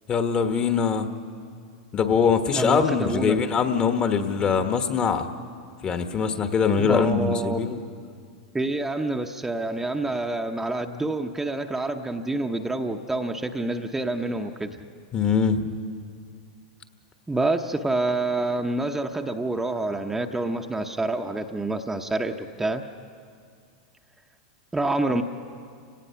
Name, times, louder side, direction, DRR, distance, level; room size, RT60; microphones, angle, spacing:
voice 1, 0.1-1.1 1.9-5.3 5.8-7.8 15.1-15.7, left 6 dB, 30° left, 7 dB, 1.4 m, -22 dB
voice 2, 2.5-3.4 5.4-5.8 6.8-7.6 8.5-14.7 17.3-22.8 24.7-25.2, right 2 dB, 10° right, 4 dB, 0.9 m, -27 dB
30.0 x 18.0 x 5.8 m, 2.2 s
hypercardioid pair, 100°, 3 cm